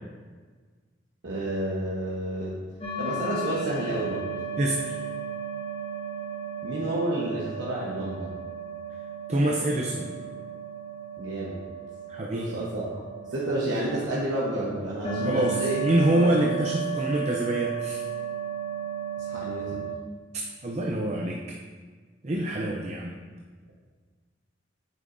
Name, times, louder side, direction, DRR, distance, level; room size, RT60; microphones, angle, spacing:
voice 1, 1.2-2.6 3.0-4.2 6.6-8.3 11.2-11.5 12.3-13.0 13.3-15.8 16.1-16.6 19.2-19.8, right 1 dB, 85° right, -6 dB, 1.1 m, -30 dB
sound 1, 2.8-19.9, right 6 dB, 30° left, 1.2 m, -34 dB
voice 2, 4.6-5.0 9.3-10.1 12.1-12.5 15.2-18.0 20.6-21.4 22.2-23.1, right 1 dB, 35° right, -1 dB, 0.6 m, -26 dB
8.8 x 6.9 x 2.6 m, 1.5 s
head